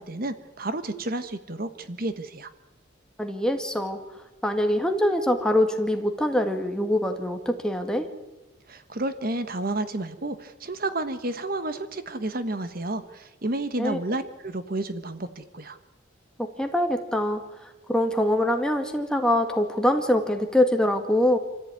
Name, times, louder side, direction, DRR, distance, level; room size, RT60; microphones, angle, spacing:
voice 1, 0.0-2.5 8.7-15.8, right 2 dB, 50° right, 11 dB, 1.3 m, -31 dB
voice 2, 3.2-4.0 4.4-8.1 13.8-14.0 16.4-21.4, left 1 dB, 5° left, 5 dB, 2.0 m, -24 dB
26.5 x 15.0 x 9.7 m, 1.1 s
head